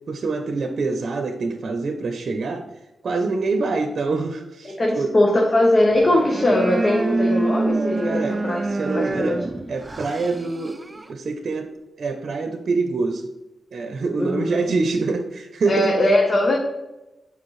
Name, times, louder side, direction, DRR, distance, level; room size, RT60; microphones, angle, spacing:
voice 1, 0.1-2.6 3.0-5.1 8.0-9.4 9.7-11.7 12.0-13.3 13.7-15.9, right 3 dB, 70° right, 5 dB, 0.6 m, -25 dB
voice 2, 4.8-8.6 8.9-9.3 14.2-14.4 15.7-16.6, left 1 dB, 45° left, 0 dB, 1.0 m, -20 dB
sound 1, 5.9-11.1, right 2 dB, 30° right, 0.4 m, -26 dB
7.3 x 5.2 x 3.2 m, 0.97 s
cardioid pair, 70°, 0 cm